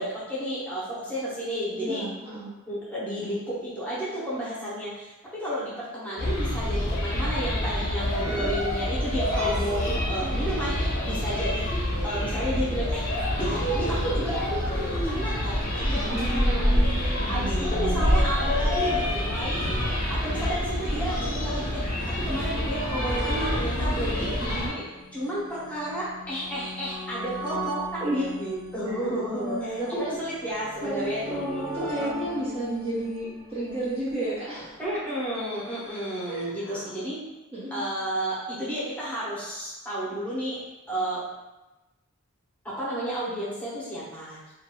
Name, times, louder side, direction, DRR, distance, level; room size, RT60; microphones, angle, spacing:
voice 1, 0.0-2.0 2.7-11.8 12.0-13.0 13.4-16.8 17.3-21.8 22.2-24.8 25.1-32.2 34.8-37.2 37.7-40.6 40.9-41.2 42.6-44.4, right 1 dB, 5° left, -9 dB, 0.8 m, -32 dB
voice 2, 1.7-2.5 8.2-8.5 16.0-18.2 23.8-24.1 28.0-28.4 28.8-30.2 30.8-34.8 36.3-36.8 37.5-37.8, right 1 dB, 25° right, -9 dB, 0.5 m, -32 dB
sound 1, 6.2-24.7, left 1 dB, 40° left, 0.6 m, -27 dB
sound 2, 19.0-19.1 19.9-35.2 36.2-36.3 36.4-36.5, right 1 dB, 80° left, 0.5 m, -41 dB
2.5 x 2.3 x 2.9 m, 1.0 s
head